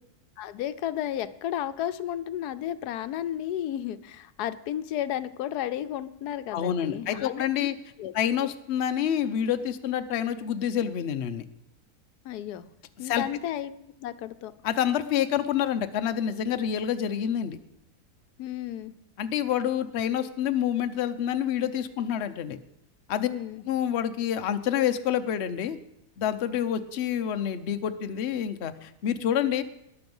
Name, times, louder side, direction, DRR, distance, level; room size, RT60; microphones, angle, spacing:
voice 1, 0.4-7.7 8.0-8.1 12.2-12.7 13.0-13.7 14.0-14.5 18.4-18.9 23.2-23.6, left 11 dB, 90° left, 13 dB, 1.2 m, -33 dB
voice 2, 6.5-7.8 8.1-11.4 13.0-13.2 14.6-17.6 19.2-22.6 23.1-23.3 23.7-25.8 26.2-29.6, left 9 dB, 55° left, 9 dB, 0.9 m, -27 dB
19.5 x 6.9 x 5.4 m, 0.83 s
omnidirectional pair, 1.6 m